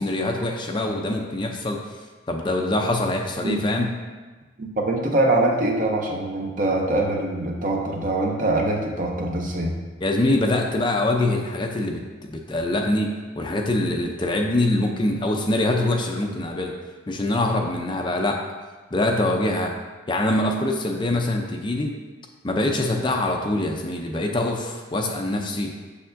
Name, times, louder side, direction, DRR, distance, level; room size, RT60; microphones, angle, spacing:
voice 1, 0.0-1.8 2.3-3.9 10.0-16.7 17.1-18.4 18.9-19.7 20.1-22.0 22.4-25.7, left 1 dB, 25° left, 2 dB, 0.5 m, -24 dB
voice 2, 4.6-9.8, right 2 dB, 40° right, 1 dB, 0.7 m, -23 dB
6.8 x 6.5 x 2.6 m, 1.3 s
head